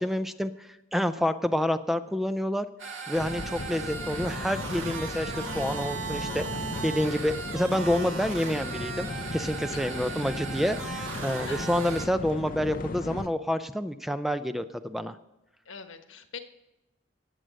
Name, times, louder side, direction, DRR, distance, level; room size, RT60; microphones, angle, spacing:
voice 1, 0.0-2.7 3.1-15.2, equal, ahead, 10 dB, 0.4 m, -28 dB
sound 1, 2.8-12.1, right 5 dB, 90° right, 2.1 m, -37 dB
sound 2, 3.1-13.3, left 2 dB, 45° left, 0.6 m, -37 dB
voice 2, 9.7-10.1 11.4-11.7 15.6-16.4, left 5 dB, 85° left, 7 dB, 1.3 m, -44 dB
18.0 x 7.7 x 6.3 m, 0.98 s
head